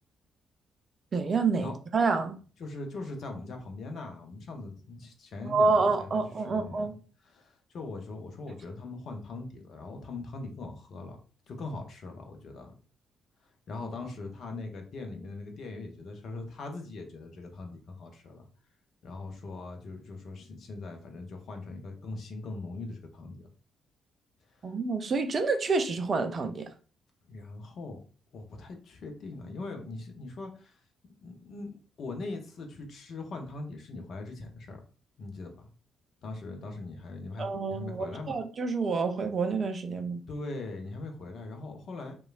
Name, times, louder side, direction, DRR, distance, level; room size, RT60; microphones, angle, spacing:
voice 1, 1.1-2.4 5.4-6.9 24.6-26.7 37.4-40.2, right 4 dB, 40° right, 0.3 m, -28 dB
voice 2, 2.6-6.2 6.5-6.9 7.2-11.2 11.5-12.7 13.7-18.5 19.0-23.5 27.3-28.0 28.3-30.8 31.2-34.8 35.2-35.7 36.2-38.4 40.3-42.2, left 3 dB, 55° left, 0.5 m, -41 dB
3.0 x 2.2 x 2.3 m
figure-of-eight pair, 40°, 0 cm